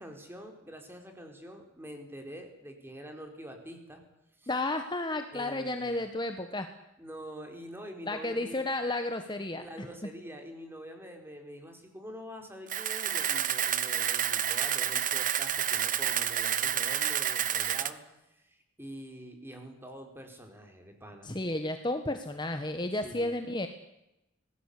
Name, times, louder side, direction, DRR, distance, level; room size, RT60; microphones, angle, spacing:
voice 1, 0.0-4.0 4.4-4.5 5.3-6.0 7.0-8.6 9.6-18.0 18.4-21.4 23.0-23.3, equal, 10° right, 4 dB, 4.5 m, -46 dB
voice 2, 4.5-6.7 8.1-9.9 21.2-23.7, left 2 dB, 20° left, 7 dB, 1.3 m, -32 dB
Camera, 12.7-17.9, right 10 dB, 40° right, 1.1 m, -29 dB
25.5 x 19.0 x 8.5 m, 0.91 s
head